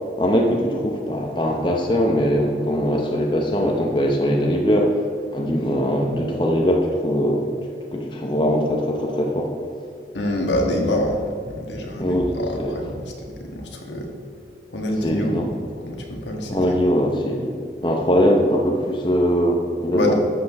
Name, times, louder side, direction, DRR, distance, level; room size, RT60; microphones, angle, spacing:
voice 1, 0.2-5.0 5.3-7.5 7.9-9.5 12.0-12.8 15.0-15.5 16.5-20.1, equal, 25° left, 1 dB, 0.9 m, -21 dB
voice 2, 10.1-14.1 14.7-15.4 15.8-16.8 19.9-20.1, left 1 dB, 90° left, 1 dB, 1.6 m, -26 dB
12.0 x 7.5 x 3.6 m, 2.3 s
head